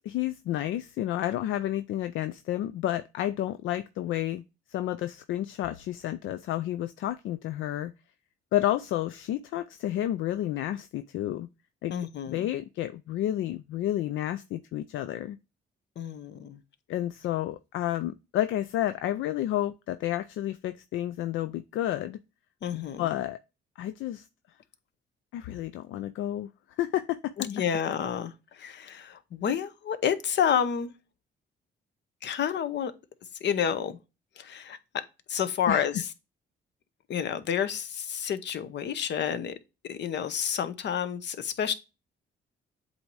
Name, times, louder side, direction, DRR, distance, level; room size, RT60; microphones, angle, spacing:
voice 1, 0.0-4.4 4.7-7.9 8.5-11.5 11.8-11.9 12.3-15.4 16.9-22.2 22.7-23.4 23.8-24.3 25.3-26.5 26.8-27.3 35.7-35.9, left 13 dB, 80° left, 0.4 m, -30 dB
voice 2, 11.9-12.5 16.0-16.6 22.6-23.1 27.4-30.9 32.2-32.9 33.4-34.0 34.4-35.0 35.3-36.1 37.1-39.6 39.8-41.7, left 8 dB, 60° left, 0.8 m, -29 dB
7.9 x 2.8 x 4.6 m
cardioid pair, 90°, 20 cm